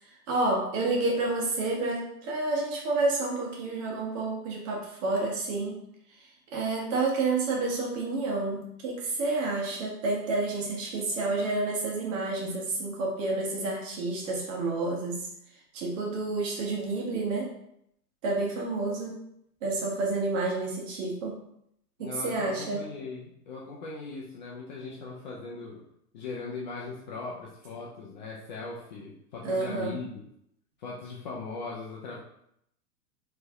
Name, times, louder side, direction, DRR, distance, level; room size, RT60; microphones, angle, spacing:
voice 1, 0.3-5.8 6.5-15.2 15.7-17.5 18.2-19.2 19.6-21.3 22.0-22.8 29.4-29.9, right 3 dB, 45° right, -1 dB, 1.4 m, -29 dB
voice 2, 22.0-25.8 26.1-30.1 30.8-32.2, left 4 dB, 30° left, -3 dB, 0.4 m, -39 dB
4.5 x 3.2 x 2.9 m, 0.74 s
hypercardioid pair, 135°, 50 cm